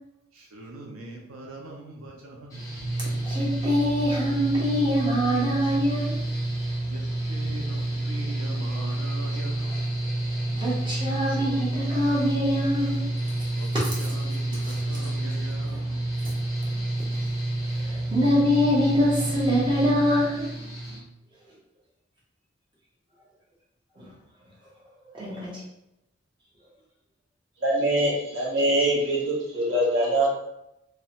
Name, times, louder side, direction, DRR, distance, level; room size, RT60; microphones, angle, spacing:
voice 1, 0.3-2.6 6.9-9.8 13.6-13.7 14.0-16.1, right 2 dB, 90° right, 1 dB, 0.4 m, -42 dB
Mechanical fan, 2.5-21.0, right 1 dB, 15° left, 0.7 m, -29 dB
voice 2, 3.2-6.2 9.6-9.8 10.5-13.0 13.8-13.9 14.5-14.8 15.7-15.8 16.2-16.3 17.8-20.5 24.0-24.1 25.1-25.6, equal, 25° right, -6 dB, 0.7 m, -24 dB
voice 3, 27.6-30.3, right 1 dB, 65° right, -4 dB, 0.9 m, -23 dB
2.7 x 2.1 x 2.8 m, 0.85 s
head